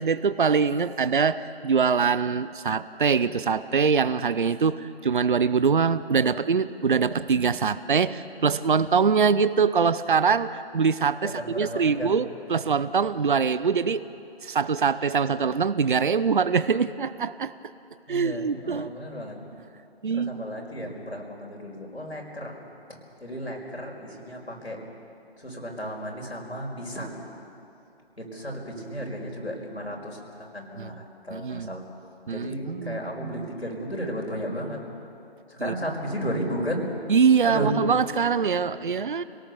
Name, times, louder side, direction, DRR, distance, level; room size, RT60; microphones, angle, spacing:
voice 1, 0.0-14.0 14.4-17.5 18.1-18.9 20.0-20.4 30.8-30.9 31.3-31.7 32.3-33.5 35.6-35.7 37.1-39.2, right 6 dB, 50° right, 15 dB, 0.7 m, -23 dB
voice 2, 11.2-12.2 18.1-19.4 20.1-22.6 23.2-24.8 25.4-27.2 28.2-31.8 32.3-34.8 35.5-36.9 37.4-37.7, equal, 85° left, 0 dB, 5.2 m, -34 dB
27.5 x 18.0 x 6.9 m, 2.6 s
figure-of-eight pair, 150°, 32 cm